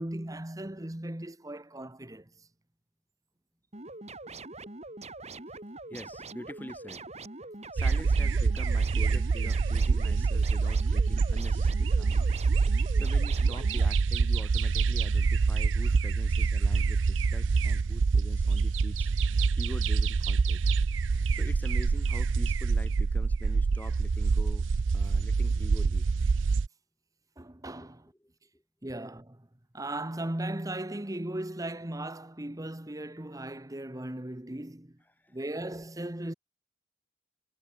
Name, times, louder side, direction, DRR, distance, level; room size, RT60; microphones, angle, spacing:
voice 1, 0.0-2.5 27.4-28.1 28.8-29.5 29.7-35.0 35.3-36.3, right 1 dB, 20° right, 1.2 m, -37 dB
sound 1, 3.7-13.9, right 2 dB, 35° right, 5.9 m, -43 dB
voice 2, 5.9-7.0 7.7-12.3 12.9-19.1 19.6-20.7 21.3-24.6 24.9-26.1 27.8-27.9 28.2-28.3 35.2-35.4, equal, 10° left, 1.2 m, -45 dB
sound 2, 7.8-26.7, right 4 dB, 85° right, 0.5 m, -26 dB
head